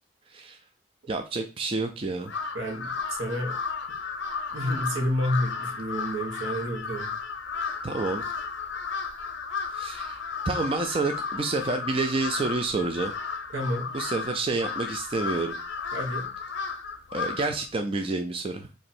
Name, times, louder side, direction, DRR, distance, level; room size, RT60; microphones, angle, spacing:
voice 1, 1.1-2.3 7.8-8.3 9.7-10.2 10.5-13.1 13.9-15.5 17.1-18.7, right 3 dB, 30° right, 6 dB, 0.3 m, -29 dB
Crow, 2.2-17.6, left 5 dB, 70° left, 0.6 m, -34 dB
voice 2, 2.5-3.6 4.5-7.1 13.5-13.9 15.9-16.3, equal, 90° right, 1 dB, 1.3 m, -29 dB
2.9 x 2.7 x 4.2 m, 0.32 s
head